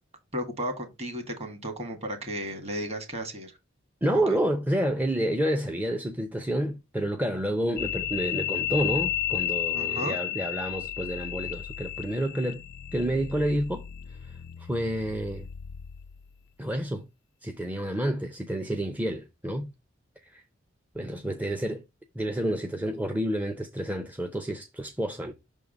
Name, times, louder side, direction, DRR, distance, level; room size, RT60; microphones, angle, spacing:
voice 1, 0.3-3.6 4.1-4.2 9.7-10.2, equal, 35° right, 1.6 m, -34 dB
voice 2, 4.0-12.6 12.9-13.8 14.6-15.5 16.6-17.1 17.4-19.7 20.3-20.4 20.9-21.8 22.1-25.3, right 1 dB, 10° right, 0.5 m, -29 dB
sound 1, 7.8-16.3, left 12 dB, 50° left, 0.4 m, -33 dB
5.9 x 3.6 x 5.0 m
head